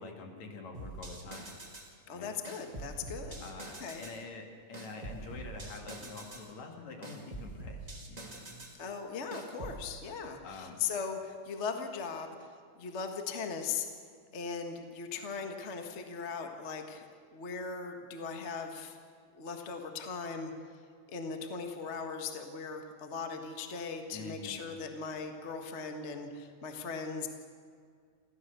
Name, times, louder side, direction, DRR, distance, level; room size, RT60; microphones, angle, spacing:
voice 1, 0.0-1.5 2.1-2.3 3.4-8.7 10.4-10.8 24.1-24.6, left 3 dB, 70° left, 2 dB, 3.6 m, -46 dB
sound 1, 0.7-1.9 2.4-4.2 4.7-6.5 7.0-8.8 9.3-9.8, right 2 dB, 15° right, 2.1 m, -45 dB
voice 2, 2.1-3.4 3.8-4.0 8.8-13.9 14.3-17.0 17.3-19.0 19.3-20.5 21.1-27.3, left 5 dB, 30° left, 5 dB, 1.3 m, -39 dB
28.0 x 14.5 x 6.8 m, 2.1 s
omnidirectional pair, 3.4 m